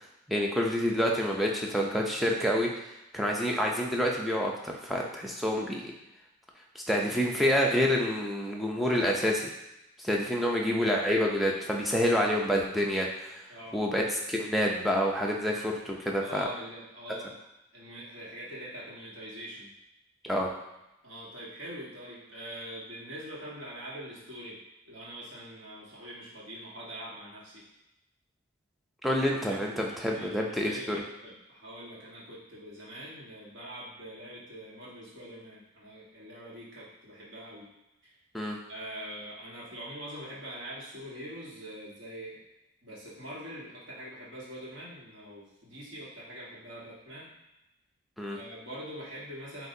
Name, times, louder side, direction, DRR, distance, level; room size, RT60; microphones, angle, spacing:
voice 1, 0.3-2.7 3.1-5.9 6.8-9.5 10.0-13.4 13.7-16.5 20.2-20.5 29.0-31.0 38.3-38.6 48.2-48.4, equal, ahead, -2 dB, 0.5 m, -28 dB
voice 2, 13.5-13.8 16.2-17.3 17.7-19.7 21.0-24.6 24.8-27.6 29.5-29.7 30.1-37.7 38.0-38.2 38.7-42.4 42.8-47.3 48.3-49.7, equal, 60° right, -6 dB, 1.4 m, -43 dB
7.7 x 2.6 x 2.7 m, 0.92 s
head